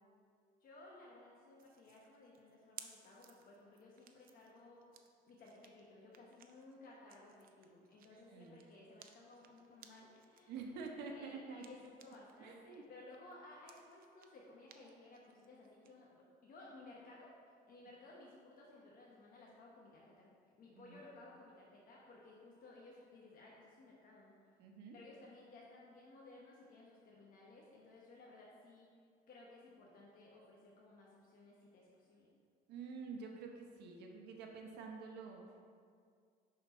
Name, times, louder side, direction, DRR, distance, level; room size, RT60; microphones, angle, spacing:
voice 1, 0.6-4.8 5.3-10.6 11.0-20.3 20.6-24.5 24.9-28.9 29.3-32.3, left 2 dB, 60° left, -4 dB, 1.1 m, -58 dB
sound 1, 1.6-12.4 12.7-15.9, right 9 dB, 60° right, 0.5 m, -61 dB
voice 2, 8.1-8.6 10.5-11.6 12.4-12.8 20.7-21.0 24.6-25.0 32.7-35.4, right 4 dB, 80° right, 2 dB, 0.9 m, -48 dB
5.8 x 4.2 x 5.4 m, 2.1 s
cardioid pair, 110°, 17 cm